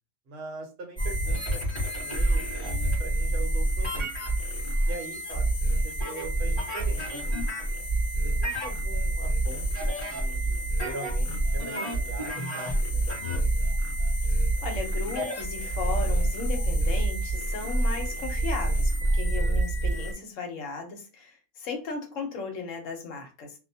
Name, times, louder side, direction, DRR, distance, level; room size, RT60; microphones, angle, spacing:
voice 1, 0.3-4.1 4.8-7.6 8.2-13.5, right 2 dB, 55° right, 2 dB, 0.9 m, -42 dB
sound 1, 1.0-20.1, right 1 dB, 20° left, 1.1 m, -27 dB
voice 2, 14.6-23.5, left 4 dB, 75° left, 4 dB, 1.1 m, -36 dB
2.5 x 2.1 x 2.7 m, 0.32 s
omnidirectional pair, 1.4 m